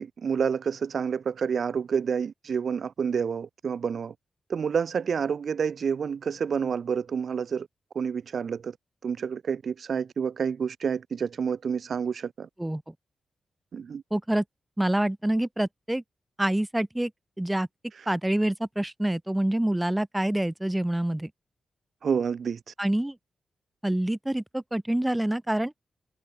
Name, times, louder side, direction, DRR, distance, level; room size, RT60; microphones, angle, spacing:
voice 1, 0.0-4.1 4.5-7.7 7.9-8.7 9.0-12.5 13.7-14.0 22.0-22.6, right 6 dB, 65° right, 0.9 m, -29 dB
voice 2, 14.1-14.4 14.8-16.0 16.4-17.1 17.4-17.7 18.1-21.3 22.8-23.1 23.8-25.7, right 1 dB, 10° right, 0.7 m, -26 dB
open air
cardioid pair, 60°, 0 cm